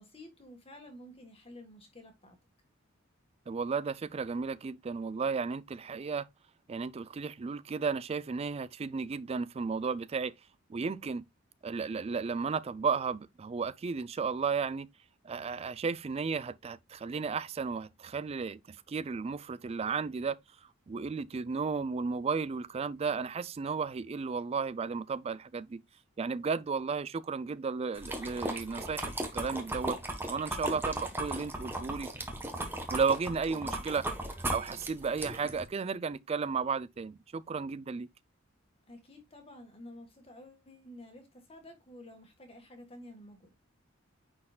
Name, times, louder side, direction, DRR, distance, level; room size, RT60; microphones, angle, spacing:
voice 1, 0.0-2.4 33.5-33.8 38.9-43.5, left 1 dB, 30° left, 1.5 m, -51 dB
voice 2, 3.5-6.3 6.7-10.3 10.7-11.2 11.6-14.9 15.2-20.4 20.9-25.8 26.2-30.0 30.3-32.1 32.9-34.0 34.5-38.1, right 5 dB, 30° right, 0.3 m, -34 dB
sound 1, 28.0-35.7, right 1 dB, 10° right, 1.2 m, -37 dB
9.8 x 4.3 x 2.3 m
head